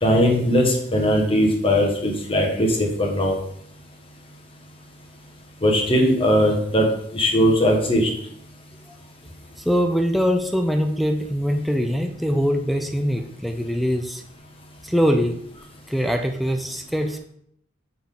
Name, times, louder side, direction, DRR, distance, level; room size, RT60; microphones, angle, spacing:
voice 1, 0.0-3.4 5.6-6.9 7.1-8.1, equal, 30° left, 1 dB, 1.4 m, -19 dB
voice 2, 9.7-14.2 14.8-15.4 15.9-17.2, equal, ahead, 4 dB, 0.5 m, -22 dB
6.6 x 5.8 x 3.8 m, 0.69 s
head